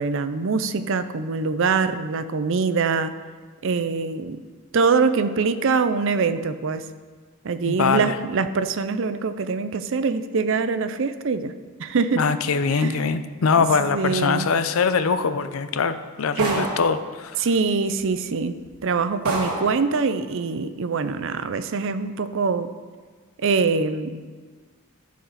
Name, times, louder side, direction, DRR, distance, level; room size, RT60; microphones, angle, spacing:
voice 1, 0.0-3.1 3.6-4.4 4.7-6.9 7.4-11.5 11.8-12.3 12.7-13.1 13.6-14.5 16.4-16.7 17.4-22.7 23.4-24.2, right 4 dB, 60° right, 11 dB, 0.5 m, -24 dB
voice 2, 7.7-8.1 12.2-17.4, left 5 dB, 70° left, 11 dB, 0.5 m, -22 dB
sound 1, 16.4-17.0 18.0-18.1 18.6-18.8 19.3-19.8, right 2 dB, 85° right, 2.1 m, -27 dB
11.5 x 4.8 x 5.6 m, 1.5 s
head